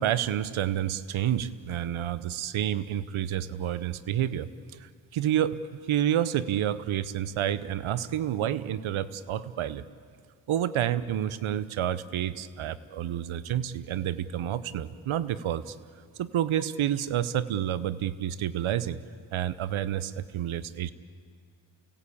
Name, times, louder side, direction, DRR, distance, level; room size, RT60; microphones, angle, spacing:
voice 1, 0.0-5.6 5.9-9.8 10.5-15.8 16.2-19.0 19.3-20.9, right 11 dB, 80° right, 16 dB, 0.9 m, -29 dB
29.0 x 17.0 x 8.5 m, 2.1 s
cardioid pair, 70°, 48 cm